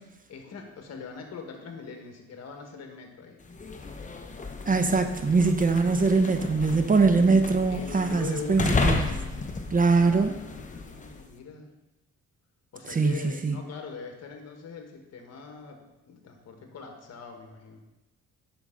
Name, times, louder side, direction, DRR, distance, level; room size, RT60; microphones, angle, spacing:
voice 1, 0.3-3.4 7.7-9.4 9.8-11.7 12.7-17.8, left 5 dB, 60° left, 4 dB, 1.6 m, -42 dB
sound 1, 3.4-11.3, left 3 dB, 25° left, 0.9 m, -33 dB
voice 2, 4.6-9.1 9.7-10.3 12.9-13.5, right 4 dB, 30° right, 7 dB, 0.7 m, -22 dB
9.0 x 6.2 x 3.9 m, 1.0 s
cardioid pair, 90°, 30 cm